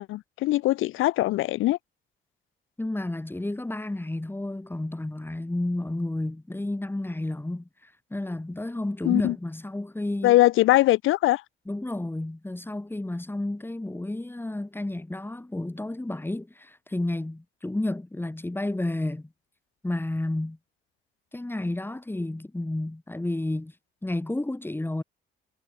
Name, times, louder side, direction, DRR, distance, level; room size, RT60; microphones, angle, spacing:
voice 1, 0.0-1.8 9.1-9.4 10.2-11.4, left 16 dB, 90° left, 1.7 m, -21 dB
voice 2, 2.8-10.3 11.7-19.3 19.8-20.6 21.3-23.7 24.0-25.0, left 1 dB, 10° left, 3.0 m, -31 dB
cardioid pair, 90°, 20 cm